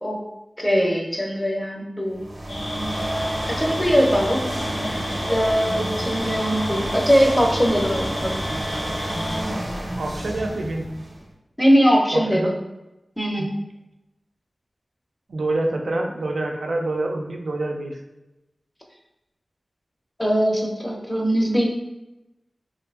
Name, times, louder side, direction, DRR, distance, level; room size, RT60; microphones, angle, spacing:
voice 1, 0.6-2.2 3.5-4.4 5.3-8.4 11.6-12.6 13.2-13.5 20.2-21.7, equal, 10° left, 0 dB, 0.5 m, -21 dB
sound 1, 2.1-11.3, right 1 dB, 40° right, 0.6 m, -29 dB
sound 2, 2.5-9.4, left 1 dB, 75° left, 0.4 m, -34 dB
voice 2, 10.0-10.9 12.1-12.5 13.4-13.5 15.3-18.0, right 2 dB, 85° right, 2 dB, 0.4 m, -26 dB
2.6 x 2.4 x 2.3 m, 0.96 s
wide cardioid pair, 75°, 0 cm